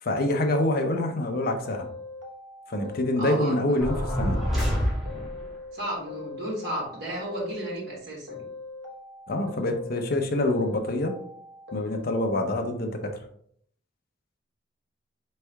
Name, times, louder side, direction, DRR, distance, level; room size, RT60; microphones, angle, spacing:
voice 1, 0.0-1.9 2.7-4.4 9.3-11.1 11.7-13.1, left 1 dB, 55° left, 4 dB, 0.7 m, -26 dB
sound 1, 1.6-3.5 3.9-5.7 6.1-7.9 8.3-10.2 10.5-12.4, left 3 dB, 80° right, 1.0 m, -41 dB
voice 2, 3.2-3.8 5.7-8.4, equal, 60° right, -4 dB, 1.8 m, -33 dB
sound 2, 3.8-5.5, equal, ahead, 1.5 m, -27 dB
4.5 x 3.3 x 3.4 m, 0.64 s
head